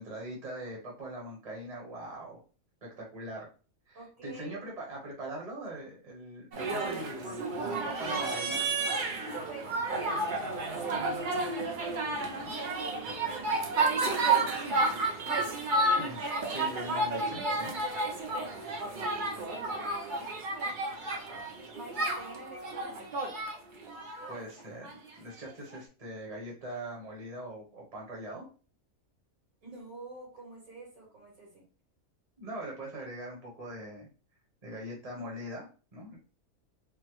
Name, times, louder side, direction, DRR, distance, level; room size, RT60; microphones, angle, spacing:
voice 1, 0.0-2.4 2.8-3.5 3.9-8.6 12.0-12.6 13.2-13.3 16.0-16.2 16.5-17.7 24.3-28.5 32.4-34.1 34.6-36.2, right 1 dB, 30° right, -2 dB, 0.9 m, -42 dB
voice 2, 3.9-4.6 9.0-11.4 12.8-16.0 18.3-20.4 21.1-23.0 29.6-31.7, right 2 dB, 75° right, -4 dB, 2.1 m, -49 dB
sound 1, 6.5-24.9 25.8-25.9, right 2 dB, 55° right, 0.6 m, -31 dB
3.7 x 2.0 x 3.0 m, 0.36 s
omnidirectional pair, 1.5 m